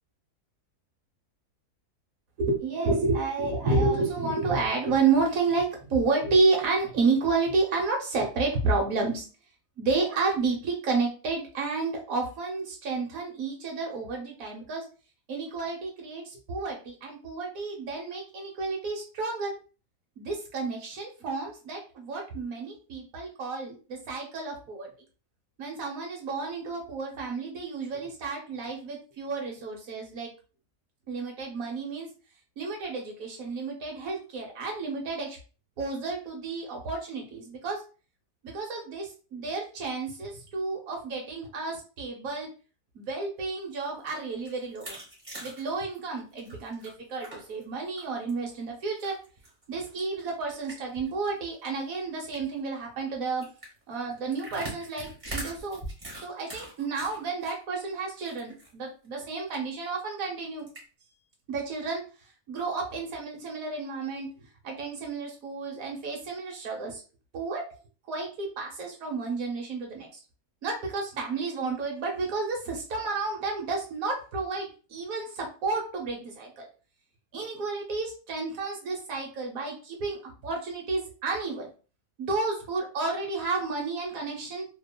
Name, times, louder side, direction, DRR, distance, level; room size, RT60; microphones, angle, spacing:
voice 1, 2.4-9.3 9.8-14.8 15.3-19.5 20.2-24.9 25.6-30.3 31.1-32.1 32.6-35.4 35.8-37.8 38.4-42.5 42.9-45.0 45.4-49.2 49.7-53.5 53.9-55.8 56.2-60.7 61.5-62.0 62.5-64.3 64.6-67.0 67.3-67.7 68.1-70.1 70.6-76.7 77.3-80.2 80.4-81.7 82.2-84.6, right 3 dB, 65° right, 0 dB, 1.2 m, -31 dB
sound 1, 43.7-47.6 48.0-48.5 49.0-51.1 51.4-51.5 51.8-51.9 52.3-52.6 53.4-57.5 57.9-58.7 59.0-59.1 59.5-59.6 60.6-60.8, right 1 dB, 30° right, 1.1 m, -42 dB
2.9 x 2.3 x 2.2 m, 0.36 s
omnidirectional pair, 1.7 m